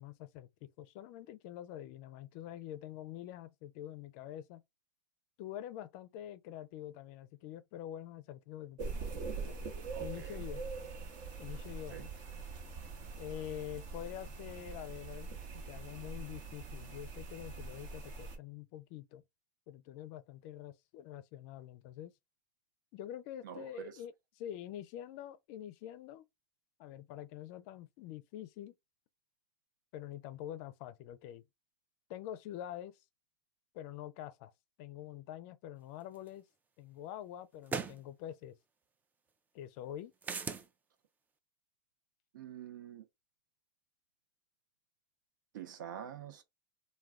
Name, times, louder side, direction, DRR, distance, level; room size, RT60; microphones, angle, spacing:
voice 1, 0.0-4.6 5.4-9.1 9.4-9.6 10.0-10.6 11.4-12.1 13.2-19.2 19.7-22.1 22.9-26.2 26.8-28.8 29.9-31.4 32.1-33.0 33.7-34.5 34.8-36.5 36.8-38.6 39.5-40.1, left 11 dB, 50° left, 0.4 m, -46 dB
sound 1, 8.8-18.4, right 4 dB, 50° right, 1.0 m, -43 dB
voice 2, 9.9-10.4 11.9-12.0 23.4-24.0 42.3-43.1 45.5-46.4, right 9 dB, 75° right, 0.6 m, -46 dB
sound 2, 36.3-36.4 37.7-38.0 40.2-40.7, right 5 dB, 15° right, 0.4 m, -37 dB
2.3 x 2.2 x 3.4 m
hypercardioid pair, 115°, 10 cm